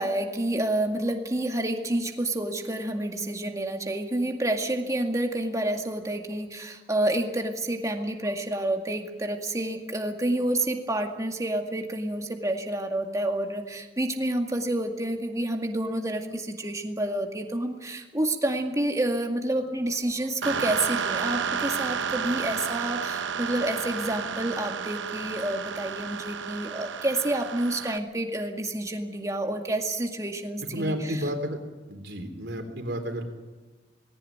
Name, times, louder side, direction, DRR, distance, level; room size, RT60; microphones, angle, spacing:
voice 1, 0.0-31.2, right 1 dB, 20° right, 3 dB, 2.1 m, -29 dB
sound 1, 20.4-28.0, right 6 dB, 85° right, 0.9 m, -31 dB
voice 2, 30.7-31.6 31.9-33.3, equal, 65° right, 5 dB, 3.6 m, -31 dB
19.5 x 17.5 x 9.4 m, 1.2 s
head